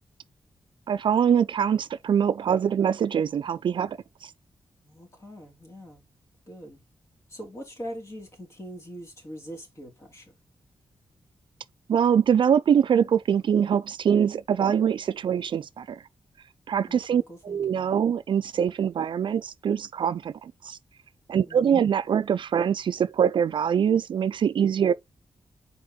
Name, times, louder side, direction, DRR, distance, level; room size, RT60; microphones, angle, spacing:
voice 1, 0.9-4.0 11.9-16.0 16.7-20.8 21.3-24.9, right 8 dB, 60° right, 0.4 m, -23 dB
voice 2, 4.8-6.1 6.5-6.8 7.3-10.3 16.9-17.9 21.4-21.9, equal, 30° left, 2.7 m, -42 dB
6.6 x 4.3 x 3.8 m
wide cardioid pair, 120°, 9 cm